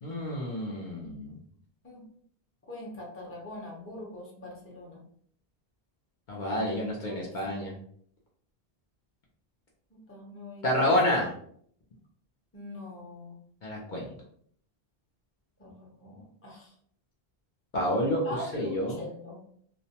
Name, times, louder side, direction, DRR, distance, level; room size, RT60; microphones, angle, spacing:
voice 1, 0.0-1.4 6.3-7.7 10.6-11.3 13.6-14.1 17.7-18.2 18.5-19.0, left 1 dB, 55° left, -3 dB, 0.7 m, -28 dB
voice 2, 2.7-5.0 6.5-7.3 9.9-10.9 12.5-13.4 15.6-16.7 18.2-19.4, left 1 dB, 15° left, -4 dB, 0.6 m, -43 dB
2.4 x 2.0 x 2.8 m, 0.62 s
omnidirectional pair, 1.0 m